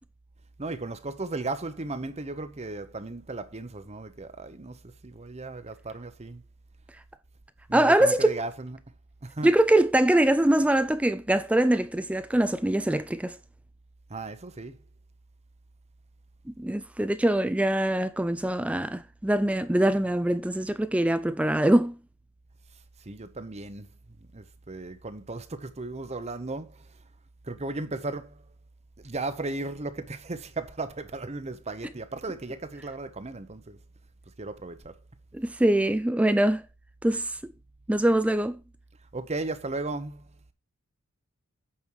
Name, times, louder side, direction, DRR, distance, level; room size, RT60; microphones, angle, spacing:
voice 1, 0.6-6.4 7.7-8.8 9.2-9.5 14.1-14.8 23.0-23.9 24.3-26.9 27.4-28.4 29.0-33.8 34.4-35.0 39.1-40.2, right 2 dB, 30° right, 0.9 m, -36 dB
voice 2, 7.7-8.3 9.4-13.4 16.6-21.9 35.3-36.6 37.0-37.4 37.9-38.6, right 1 dB, 5° right, 0.4 m, -23 dB
8.8 x 5.4 x 4.6 m
head